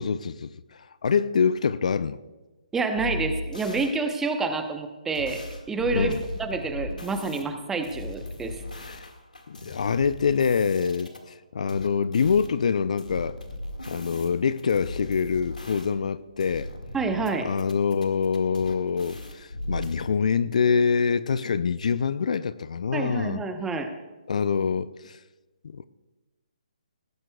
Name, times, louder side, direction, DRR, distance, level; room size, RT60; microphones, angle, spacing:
voice 1, 0.0-2.2 5.9-6.2 8.8-9.1 9.5-13.4 13.9-16.7 17.4-23.4 24.3-25.2 25.6-25.9, left 6 dB, 60° left, 0.5 m, -25 dB
voice 2, 2.7-6.1 6.4-8.6 16.9-17.5 22.9-23.9, right 3 dB, 10° right, 0.9 m, -28 dB
sound 1, 3.0-3.9 5.1-7.4 7.8-11.2 11.7-12.5 13.0-16.1 16.4-17.3 17.6-20.0, left 1 dB, 90° left, 1.9 m, -37 dB
18.0 x 15.0 x 2.3 m
figure-of-eight pair, 140°, 4 cm